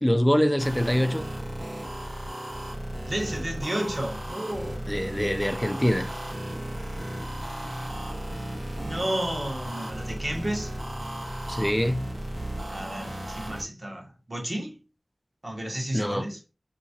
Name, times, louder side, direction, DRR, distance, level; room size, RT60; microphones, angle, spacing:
voice 1, 0.0-1.2 4.9-6.1 11.5-12.1 15.9-16.3, equal, 5° left, 0.4 m, -24 dB
sound 1, 0.6-13.6, right 1 dB, 75° right, 1.2 m, -35 dB
voice 2, 3.1-4.9 8.8-10.7 12.7-14.8 15.4-16.4, right 1 dB, 35° right, 1.2 m, -32 dB
3.5 x 2.9 x 2.8 m
wide cardioid pair, 70°, 0 cm